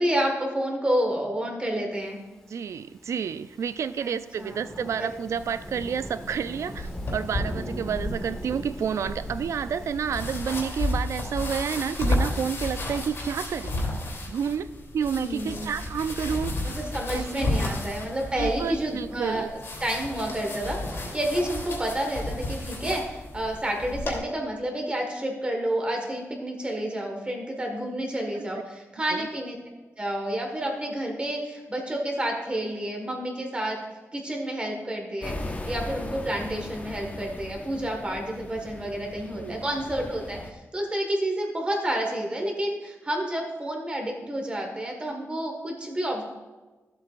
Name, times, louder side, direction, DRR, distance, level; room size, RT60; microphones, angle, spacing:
voice 1, 0.0-2.2 4.0-4.6 5.0-5.1 7.1-7.5 15.1-15.7 16.6-29.6 30.0-33.8 34.1-46.2, right 1 dB, 20° right, 1 dB, 1.6 m, -30 dB
voice 2, 2.5-13.8 14.3-14.7 14.9-16.5 17.1-17.5 18.4-19.5 29.1-29.2 39.3-39.6, right 7 dB, 70° right, 14 dB, 0.3 m, -30 dB
Thunderstorm / Rain, 2.6-10.3, equal, 10° left, 1.2 m, -41 dB
sound 1, 5.4-24.2, left 1 dB, 55° left, 2.8 m, -33 dB
sound 2, 35.2-40.5, left 2 dB, 30° left, 0.7 m, -38 dB
14.0 x 8.0 x 2.5 m, 1.2 s
wide cardioid pair, 135°, 5 cm